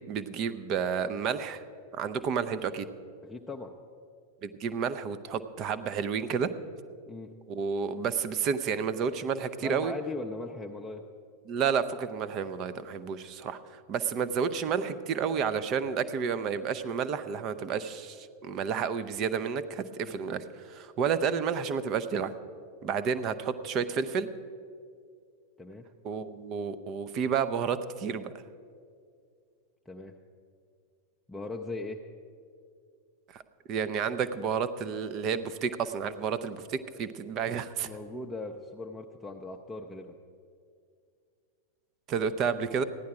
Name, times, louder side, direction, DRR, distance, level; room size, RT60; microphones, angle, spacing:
voice 1, 0.0-1.6 1.9-2.9 4.4-6.5 7.5-9.9 11.5-22.3 22.8-24.3 26.0-28.3 33.3-33.4 33.7-37.9 42.1-42.8, right 6 dB, 35° right, 14 dB, 0.6 m, -31 dB
voice 2, 3.2-3.7 7.1-7.3 9.6-11.0 20.1-20.2 25.6-25.9 29.9-30.1 31.3-32.0 37.8-40.2, left 2 dB, 10° left, 1 dB, 0.6 m, -39 dB
15.0 x 10.5 x 4.9 m, 2.3 s
figure-of-eight pair, 90°, 0 cm